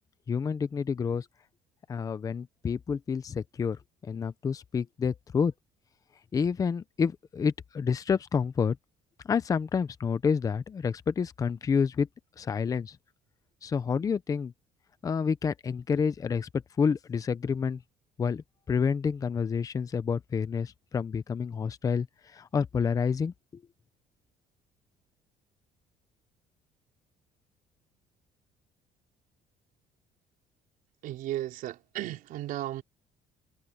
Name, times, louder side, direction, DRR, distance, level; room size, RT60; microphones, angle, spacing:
voice 1, 0.3-1.3 1.9-5.5 6.3-8.8 9.2-12.1 12.4-13.0 13.6-14.5 15.0-17.8 18.2-22.1 22.3-23.6, left 6 dB, 25° left, 0.6 m, -29 dB
voice 2, 31.0-32.8, right 14 dB, 70° right, 4.8 m, -35 dB
cardioid pair, 155°, 15 cm